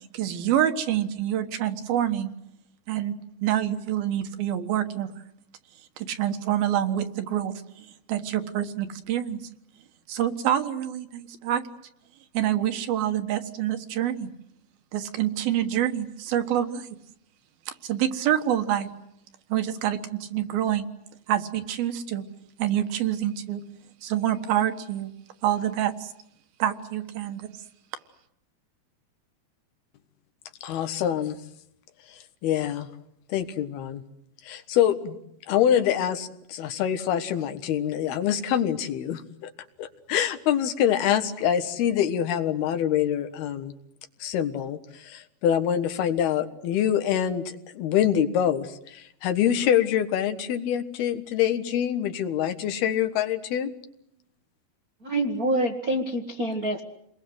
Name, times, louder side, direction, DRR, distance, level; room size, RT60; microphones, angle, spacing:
voice 1, 0.1-2.3 2.9-3.1 3.4-5.1 6.0-9.4 10.1-11.6 12.3-14.3 14.9-16.9 17.9-18.9 19.5-20.9 21.3-22.2 22.6-23.6 24.0-25.1 25.4-26.1 26.6-27.5, right 11 dB, 75° right, 8 dB, 3.3 m, -26 dB
voice 2, 30.6-31.4 32.4-32.9 33.3-34.0 34.4-35.2 35.5-39.5 39.8-43.7 44.2-53.7, left 10 dB, 80° left, 9 dB, 3.5 m, -25 dB
voice 3, 55.0-56.8, right 1 dB, 50° right, 5 dB, 1.0 m, -26 dB
29.5 x 21.0 x 7.9 m, 0.78 s
omnidirectional pair, 4.4 m